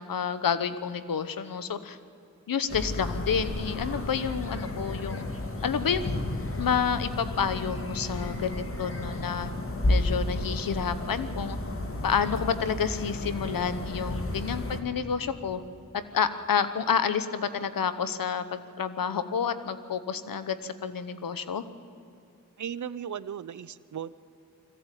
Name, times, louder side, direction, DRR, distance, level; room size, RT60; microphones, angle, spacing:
voice 1, 0.0-2.0 2.5-5.3 5.6-6.3 6.6-9.5 9.9-11.6 12.0-15.6 15.9-21.6, left 7 dB, 85° left, 12 dB, 1.0 m, -29 dB
sound 1, 2.7-14.8, left 1 dB, 40° left, 2.4 m, -32 dB
voice 2, 22.6-24.1, right 8 dB, 60° right, 17 dB, 0.7 m, -36 dB
21.0 x 15.0 x 9.1 m, 2.6 s
cardioid pair, 45°, 33 cm